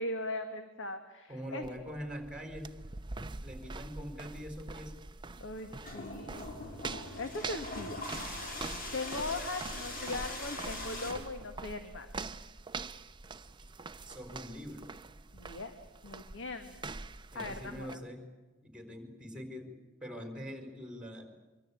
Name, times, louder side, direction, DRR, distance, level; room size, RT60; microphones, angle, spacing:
voice 1, 0.0-1.7 5.4-6.6 7.2-8.0 8.9-12.1 15.3-15.7 16.0-16.8 17.3-18.0, left 2 dB, 60° left, 7 dB, 1.9 m, -39 dB
voice 2, 1.3-2.7 3.4-5.0 13.3-13.5 14.0-14.9 17.3-18.3 18.6-19.7 20.0-21.3, equal, 5° right, 6 dB, 4.4 m, -43 dB
sound 1, 1.6-18.0, right 3 dB, 20° right, 0.8 m, -44 dB
sound 2, 5.4-11.1, left 2 dB, 40° left, 5.4 m, -41 dB
25.0 x 24.5 x 8.6 m, 1.2 s
head